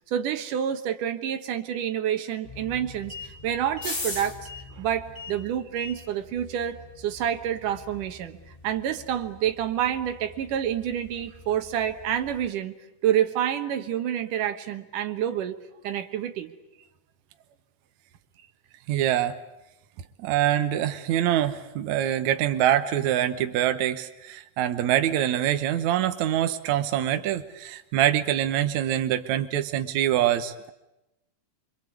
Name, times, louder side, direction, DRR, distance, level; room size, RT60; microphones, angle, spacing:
voice 1, 0.0-4.4 4.8-8.4 8.6-12.7 13.0-15.6 15.8-16.5, right 10 dB, 85° right, 8 dB, 2.9 m, -28 dB
sound 1, 2.4-12.5, left 3 dB, 20° left, 1.8 m, -42 dB
voice 2, 18.9-19.4 20.2-30.7, right 11 dB, 70° right, 8 dB, 2.4 m, -25 dB
26.0 x 26.0 x 8.4 m, 0.90 s
omnidirectional pair, 3.6 m